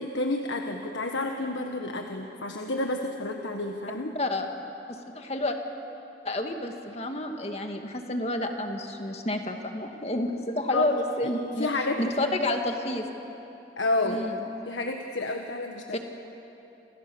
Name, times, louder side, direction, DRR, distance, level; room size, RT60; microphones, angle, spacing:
voice 1, 0.0-4.1 10.7-11.3 11.6-12.3 13.8-14.2 14.6-16.0, left 2 dB, 80° left, 3 dB, 1.5 m, -30 dB
voice 2, 4.1-4.5 4.9-5.6 6.3-11.7 12.0-13.1 14.1-14.4 15.9-16.0, left 1 dB, 35° left, 4 dB, 2.1 m, -30 dB
29.0 x 28.0 x 7.2 m, 3.0 s
head